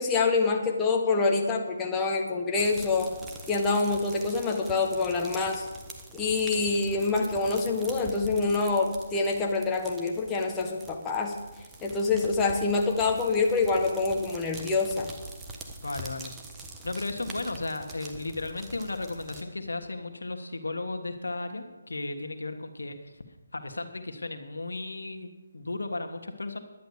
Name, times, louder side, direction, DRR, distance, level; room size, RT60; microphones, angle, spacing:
voice 1, 0.0-3.1 3.5-5.6 6.1-11.3 11.8-15.1, left 3 dB, 15° left, 0 dB, 1.3 m, -26 dB
sound 1, 2.6-19.4, right 2 dB, 10° right, 1.2 m, -44 dB
voice 2, 15.8-16.3 16.8-23.1 23.5-26.6, left 2 dB, 85° left, 6 dB, 1.5 m, -35 dB
11.0 x 9.4 x 7.0 m, 1.1 s
figure-of-eight pair, 155°, 0 cm